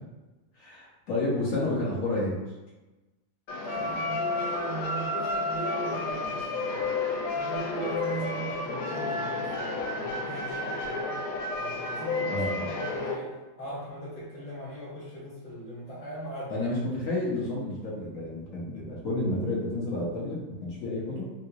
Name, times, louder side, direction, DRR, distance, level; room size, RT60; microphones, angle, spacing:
voice 1, 0.6-2.4 12.3-12.6 16.5-21.3, left 2 dB, 60° left, -6 dB, 0.8 m, -30 dB
sound 1, 3.5-13.1, left 2 dB, 85° left, 1.5 m, -31 dB
voice 2, 3.6-6.9 7.3-11.2 11.6-13.3 13.6-16.7, right 2 dB, 30° left, -8 dB, 0.7 m, -38 dB
3.7 x 2.4 x 2.8 m, 1.1 s
omnidirectional pair, 2.4 m